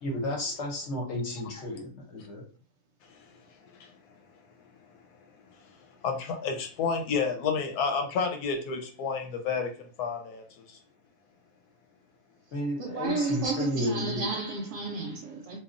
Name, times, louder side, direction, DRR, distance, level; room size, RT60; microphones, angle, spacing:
voice 1, 0.0-2.4 12.5-14.3, left 1 dB, 55° left, 0.9 m, -32 dB
voice 2, 6.0-9.7 10.0-10.8, left 5 dB, 85° left, 1.2 m, -30 dB
voice 3, 12.8-15.6, right 4 dB, 65° right, 0.9 m, -32 dB
2.9 x 2.3 x 2.4 m
omnidirectional pair, 1.6 m